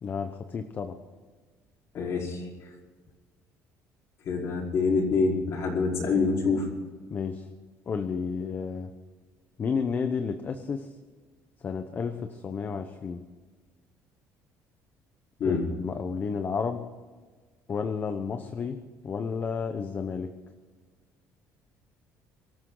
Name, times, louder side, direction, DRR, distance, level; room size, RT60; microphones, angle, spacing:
voice 1, 0.0-1.0 7.1-7.4 7.9-8.9 9.6-10.9 11.6-13.2 15.4-16.8 17.7-18.8 19.0-20.3, left 5 dB, 30° left, 7 dB, 1.0 m, -31 dB
voice 2, 1.9-2.4 4.3-6.7 15.4-15.6, left 4 dB, 50° left, -1 dB, 4.7 m, -26 dB
23.5 x 13.5 x 4.0 m, 1.5 s
cardioid pair, 145°, 6 cm